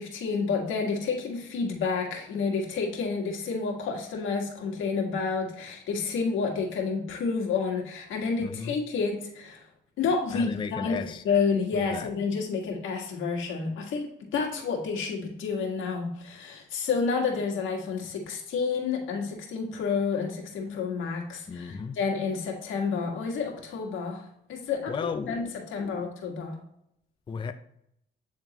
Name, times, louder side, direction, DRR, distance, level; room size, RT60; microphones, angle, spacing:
voice 1, 0.0-9.6 10.0-24.2 24.5-24.9 25.3-25.4 25.7-26.6, left 5 dB, 80° left, 1.7 m, -29 dB
voice 2, 8.4-8.8 10.3-11.2 11.7-12.1 21.5-22.0 24.9-25.5 25.8-26.1 27.3-27.5, left 5 dB, 25° left, 0.4 m, -34 dB
8.7 x 3.7 x 2.9 m
cardioid pair, 90°, 20 cm